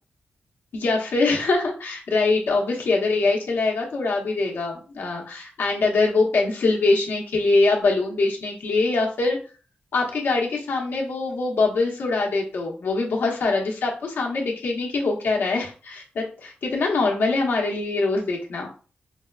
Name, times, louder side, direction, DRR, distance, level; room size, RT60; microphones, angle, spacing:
voice 1, 0.7-9.4 9.9-18.7, left 3 dB, 85° left, -1 dB, 1.0 m, -23 dB
5.1 x 2.2 x 2.4 m, 0.37 s
wide cardioid pair, 95°, 4 cm